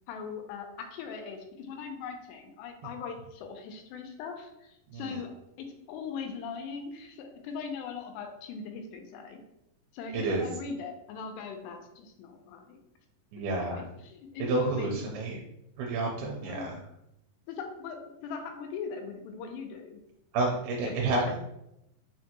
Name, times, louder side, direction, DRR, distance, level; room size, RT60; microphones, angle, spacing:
voice 1, 0.1-5.3 5.6-9.4 9.9-12.8 13.6-15.2 16.4-16.8 17.5-20.0, left 5 dB, 85° left, 4 dB, 2.7 m, -40 dB
voice 2, 10.1-10.5 13.3-13.8 14.5-15.4 15.8-16.8 20.3-21.4, right 2 dB, 80° right, -1 dB, 2.2 m, -30 dB
6.3 x 2.2 x 2.9 m, 0.83 s
omnidirectional pair, 4.8 m